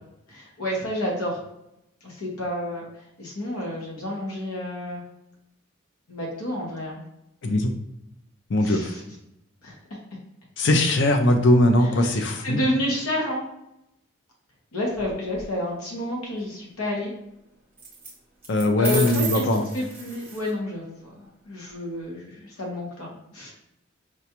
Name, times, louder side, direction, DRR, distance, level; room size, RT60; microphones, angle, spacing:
voice 1, 0.3-1.4 2.0-2.8 3.2-5.0 6.1-7.0 8.6-9.0 9.6-9.8 12.0-13.4 14.7-17.1 18.8-19.4 19.7-23.5, left 1 dB, 90° left, -3 dB, 0.9 m, -30 dB
voice 2, 8.5-8.9 10.6-12.6 18.5-19.7, left 1 dB, 55° left, 5 dB, 0.5 m, -20 dB
sound 1, 14.9-15.4 17.8-18.1 18.4-20.5, right 5 dB, 10° right, 0.7 m, -33 dB
4.9 x 2.3 x 2.8 m, 0.84 s
head